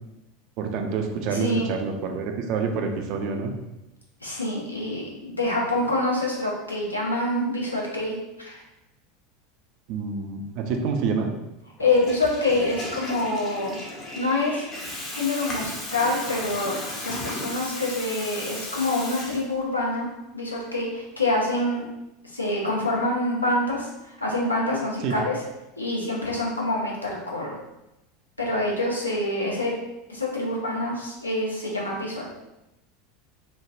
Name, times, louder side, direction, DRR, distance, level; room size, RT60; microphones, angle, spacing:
voice 1, 0.6-3.5 9.9-11.3 25.0-25.2, right 5 dB, 50° right, 4 dB, 0.4 m, -27 dB
voice 2, 1.3-1.7 4.2-8.6 11.8-13.8 14.2-14.6 15.1-16.7 17.0-20.1 20.3-21.8 22.3-23.9 24.2-25.4 25.8-27.6 28.4-29.7 30.1-32.2, left 2 dB, 85° left, -3 dB, 0.6 m, -26 dB
Water tap faucet / Toilet flush, 11.8-19.8, left 1 dB, 30° left, 0.7 m, -35 dB
3.2 x 2.0 x 2.5 m, 0.94 s
figure-of-eight pair, 80°, 0 cm